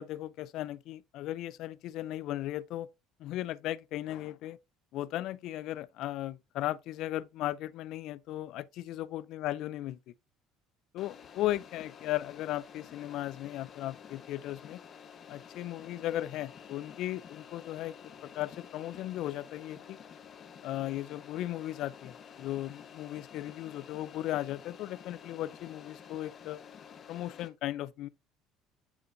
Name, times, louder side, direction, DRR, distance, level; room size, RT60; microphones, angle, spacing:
voice 1, 0.0-2.9 3.2-4.6 4.9-10.1 10.9-14.8 15.3-18.0 18.2-20.0 20.6-26.6 27.1-28.1, left 14 dB, 65° left, 0.3 m, -36 dB
sound 1, 11.0-27.5, left 7 dB, 45° left, 0.9 m, -51 dB
9.5 x 4.1 x 2.5 m
supercardioid pair, 105°, 0 cm